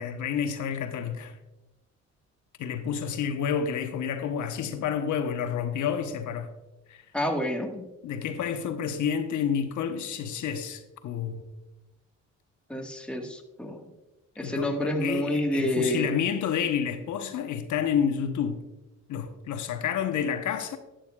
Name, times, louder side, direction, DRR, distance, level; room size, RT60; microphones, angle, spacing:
voice 1, 0.0-1.4 2.6-6.5 6.9-7.0 8.0-11.4 14.4-18.7 19.1-20.8, left 7 dB, 75° left, 1.0 m, -29 dB
voice 2, 7.1-7.9 12.7-13.8 14.4-16.1, left 1 dB, 5° left, 1.4 m, -28 dB
12.0 x 10.5 x 2.3 m
cardioid pair, 90°, 30 cm